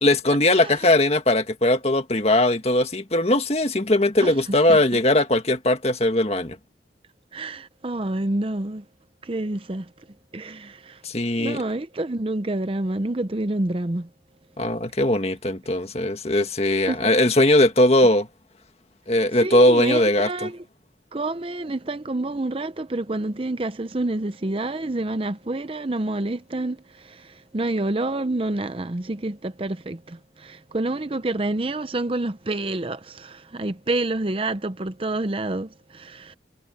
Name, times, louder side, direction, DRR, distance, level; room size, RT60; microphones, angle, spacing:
voice 1, 0.0-6.6 11.0-11.6 14.6-18.3 19.1-20.5, left 1 dB, 35° left, 1.9 m, -20 dB
voice 2, 7.3-8.8 9.2-9.9 10.3-11.0 11.4-14.1 16.9-17.1 19.4-20.6 21.1-26.8 27.0-36.3, right 2 dB, 30° right, 0.7 m, -28 dB
head